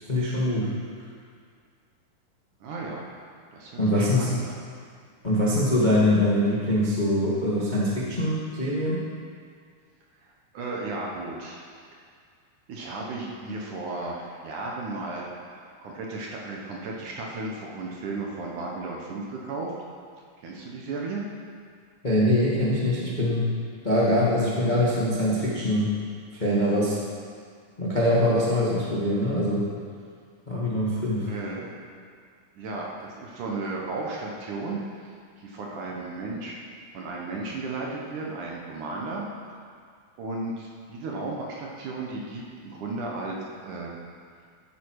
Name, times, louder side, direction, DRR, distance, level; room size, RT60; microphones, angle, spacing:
voice 1, 0.1-0.7 3.8-4.3 5.2-9.0 22.0-23.4 23.8-25.9 26.4-27.0 27.8-29.7 30.5-31.3, left 1 dB, 25° left, -7 dB, 0.9 m, -23 dB
voice 2, 2.6-3.1 3.5-4.6 10.2-11.6 12.7-15.3 15.5-19.7 20.4-21.2 31.3-31.7 32.6-36.6 36.9-39.3 40.2-43.4 43.6-43.9, right 3 dB, 60° right, -2 dB, 2.4 m, -34 dB
13.5 x 10.5 x 4.9 m, 2.1 s
omnidirectional pair, 4.5 m